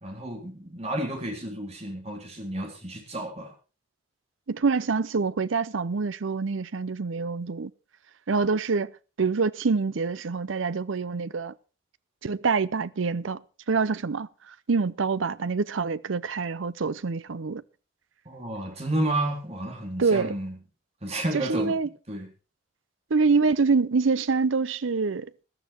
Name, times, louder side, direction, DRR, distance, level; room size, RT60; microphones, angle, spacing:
voice 1, 0.0-3.5 18.3-20.6 21.0-21.8 22.1-22.3, right 1 dB, 35° right, 3.6 m, -31 dB
voice 2, 4.5-7.7 8.3-8.9 9.2-11.5 12.2-13.4 13.7-17.6 20.0-20.3 21.3-21.9 23.1-25.4, right 4 dB, 85° right, 0.6 m, -26 dB
14.5 x 12.5 x 4.5 m
head